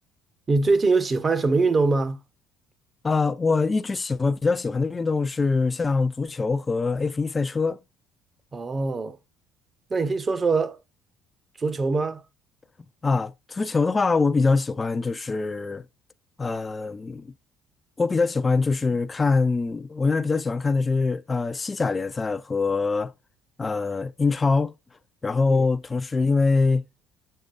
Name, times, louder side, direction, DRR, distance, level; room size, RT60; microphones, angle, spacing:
voice 1, 0.5-2.2 8.5-9.2 9.9-10.8 11.6-12.2 25.5-25.7, right 3 dB, 30° right, 0.8 m, -23 dB
voice 2, 3.0-7.8 13.0-15.8 16.4-17.3 18.0-23.1 23.6-24.7 25.2-26.8, left 4 dB, 25° left, 0.4 m, -23 dB
7.2 x 6.6 x 2.4 m
supercardioid pair, 90°, 0 cm